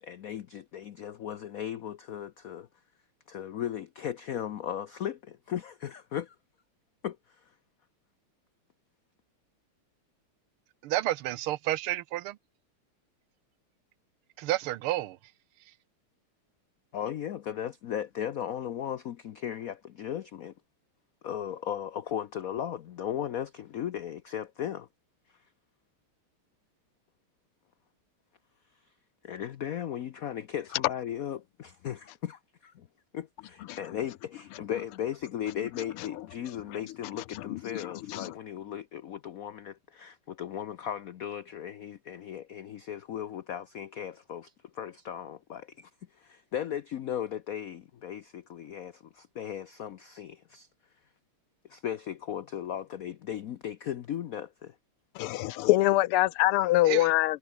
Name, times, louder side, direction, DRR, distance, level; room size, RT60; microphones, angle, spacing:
voice 1, 0.0-2.7 3.3-6.3 7.0-7.5 16.9-20.5 21.2-24.9 29.2-32.9 33.1-50.7 51.7-54.8, left 10 dB, 70° left, 0.8 m, -37 dB
voice 2, 10.8-12.4 14.4-15.2 56.9-57.1, right 15 dB, 85° right, 1.6 m, -30 dB
voice 3, 37.3-38.3 55.2-57.4, left 16 dB, 90° left, 1.6 m, -25 dB
omnidirectional pair, 2.4 m